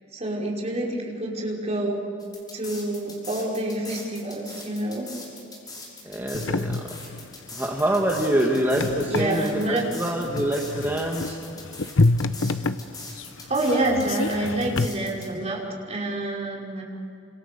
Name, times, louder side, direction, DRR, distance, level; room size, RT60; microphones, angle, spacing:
voice 1, 0.1-2.0 2.5-5.1 6.2-6.3 9.1-10.0 13.5-16.8, right 1 dB, 35° right, -2 dB, 5.4 m, -27 dB
sound 1, 2.2-15.3, left 3 dB, 20° left, 6.5 m, -41 dB
voice 2, 6.0-6.9 7.5-11.4, right 1 dB, 10° right, -1 dB, 1.9 m, -25 dB
sound 2, 6.3-14.9, left 2 dB, 80° left, 0.9 m, -28 dB
29.5 x 27.0 x 6.9 m, 2.7 s
head